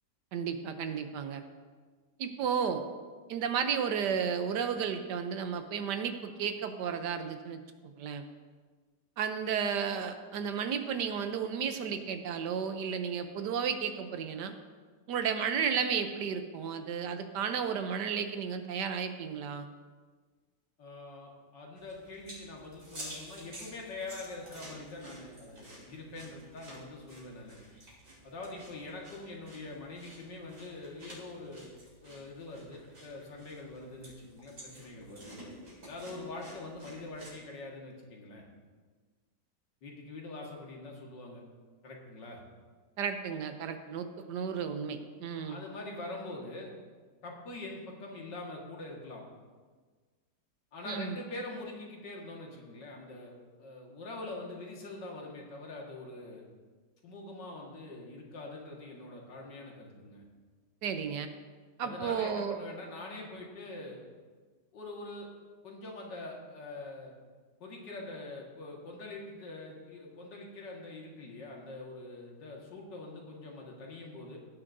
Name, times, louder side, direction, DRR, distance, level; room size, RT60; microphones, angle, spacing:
voice 1, 0.3-1.4 2.2-2.8 3.3-8.3 9.2-14.5 15.1-19.7 43.0-45.6 50.9-51.2 60.8-61.3 61.8-62.6, right 7 dB, 75° right, 8 dB, 1.3 m, -33 dB
voice 2, 20.8-27.6 28.2-35.5 35.8-38.4 39.8-41.4 41.8-42.4 45.3-46.7 47.2-49.2 50.7-56.4 57.0-60.2 61.8-64.1 64.7-65.3 65.6-67.1 67.6-74.4, left 2 dB, 85° left, -1 dB, 2.4 m, -44 dB
sound 1, 21.8-37.4, right 1 dB, 55° right, 4.2 m, -51 dB
16.5 x 9.7 x 2.6 m, 1.4 s
omnidirectional pair, 1.9 m